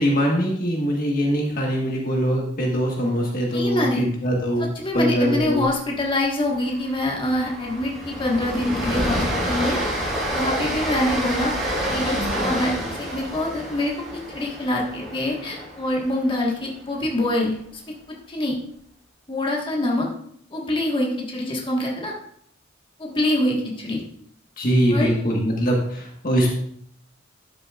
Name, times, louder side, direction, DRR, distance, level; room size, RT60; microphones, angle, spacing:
voice 1, 0.0-4.7 4.9-5.6 24.6-26.5, equal, 45° left, -1 dB, 1.4 m, -22 dB
voice 2, 3.5-4.0 4.7-9.8 10.0-13.9 14.3-17.8 18.3-18.6 19.3-20.1 20.5-22.1 23.0-24.0 24.9-25.1, left 1 dB, 25° left, -2 dB, 1.5 m, -25 dB
Train, 5.4-5.7 5.9-6.1 6.5-16.6, equal, ahead, 3.2 m, -28 dB
12.0 x 6.9 x 2.4 m, 0.67 s
head